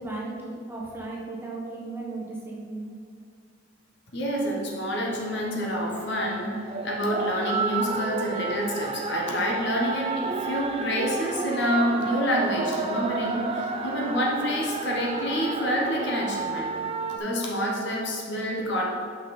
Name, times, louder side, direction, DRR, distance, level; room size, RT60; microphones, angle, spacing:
voice 1, 0.0-2.9, right 2 dB, 10° right, -4 dB, 1.0 m, -35 dB
voice 2, 4.1-16.7 17.1-18.9, equal, 65° left, -1 dB, 1.1 m, -27 dB
sound 1, 5.1-17.2, right 4 dB, 30° right, 0.4 m, -32 dB
5.9 x 5.4 x 4.3 m, 2.2 s
head